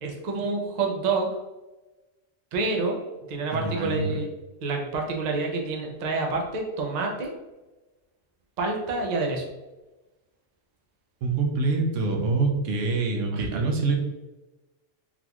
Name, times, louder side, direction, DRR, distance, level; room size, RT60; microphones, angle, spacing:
voice 1, 0.0-1.3 2.5-3.0 3.3-4.3 4.6-7.3 8.6-9.5 13.3-13.5, right 3 dB, 50° right, 1 dB, 0.5 m, -28 dB
voice 2, 3.5-4.1 11.2-14.0, right 3 dB, 75° right, 2 dB, 1.0 m, -25 dB
3.9 x 2.4 x 2.8 m, 1.1 s
omnidirectional pair, 1.3 m